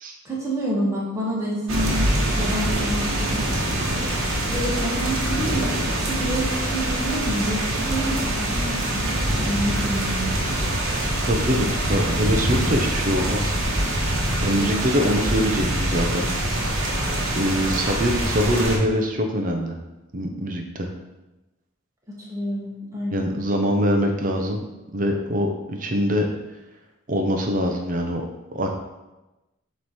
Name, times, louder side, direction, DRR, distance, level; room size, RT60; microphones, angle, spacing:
voice 1, 0.2-3.5 4.5-10.4 14.4-14.8 22.1-23.3, right 1 dB, 15° right, -5 dB, 1.5 m, -28 dB
sound 1, 1.7-18.8, right 1 dB, 85° right, 1.2 m, -24 dB
voice 2, 11.2-13.5 14.4-16.3 17.3-19.8 20.1-20.9 23.1-24.6 24.9-26.3 27.1-28.2 28.5-28.7, equal, 40° right, 3 dB, 0.7 m, -23 dB
7.7 x 3.2 x 4.2 m, 1.0 s
head